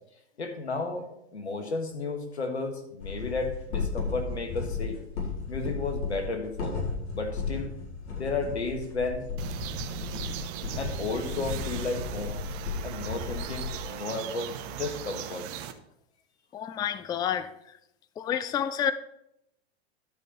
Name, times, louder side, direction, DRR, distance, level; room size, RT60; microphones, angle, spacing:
voice 1, 0.4-5.0 5.5-6.8 7.1-7.7 8.2-9.3 10.8-12.4 12.8-15.5, left 3 dB, 90° left, 1.7 m, -33 dB
sound 1, 3.0-13.8, left 4 dB, 50° left, 4.1 m, -34 dB
sound 2, 9.4-15.7, right 10 dB, 45° right, 1.0 m, -38 dB
voice 2, 16.5-17.5 18.2-18.9, left 9 dB, 15° left, 0.4 m, -29 dB
12.0 x 5.3 x 5.4 m
hypercardioid pair, 100°, 32 cm